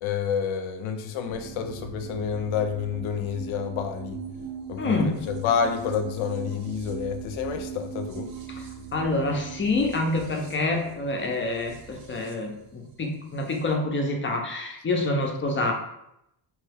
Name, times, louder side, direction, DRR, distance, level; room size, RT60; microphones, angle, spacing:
voice 1, 0.0-4.2 4.7-8.3, left 7 dB, 75° left, 6 dB, 0.6 m, -29 dB
sound 1, 1.3-13.7, right 6 dB, 70° right, 0.7 m, -40 dB
voice 2, 4.8-5.2 8.6-8.7 8.9-15.7, left 2 dB, 25° left, 2 dB, 0.4 m, -27 dB
3.0 x 2.3 x 3.2 m, 0.82 s
cardioid pair, 125°, 48 cm